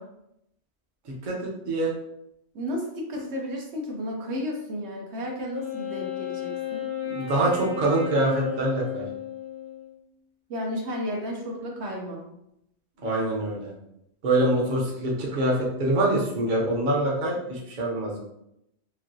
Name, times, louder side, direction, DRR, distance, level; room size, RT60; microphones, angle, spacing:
voice 1, 1.2-1.9 7.1-9.1 13.0-13.7 14.2-18.2, right 1 dB, 50° right, -3 dB, 0.8 m, -25 dB
voice 2, 2.5-6.8 10.5-12.2, equal, 75° right, -1 dB, 1.0 m, -33 dB
Wind instrument woodwind instrument, 5.5-10.0, left 6 dB, 75° left, 1.1 m, -33 dB
3.1 x 2.6 x 2.6 m, 0.81 s
omnidirectional pair, 1.1 m